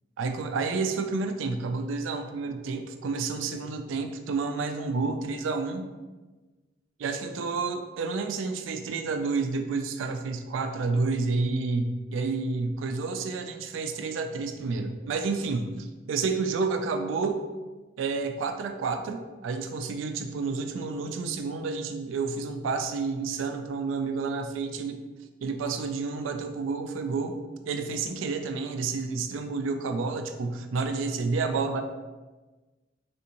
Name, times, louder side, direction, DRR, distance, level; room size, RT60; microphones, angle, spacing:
voice 1, 0.2-5.9 7.0-17.5 18.0-25.0 25.4-27.4 27.7-31.8, right 4 dB, 85° right, 6 dB, 0.3 m, -30 dB
3.4 x 2.6 x 2.9 m, 1.2 s
head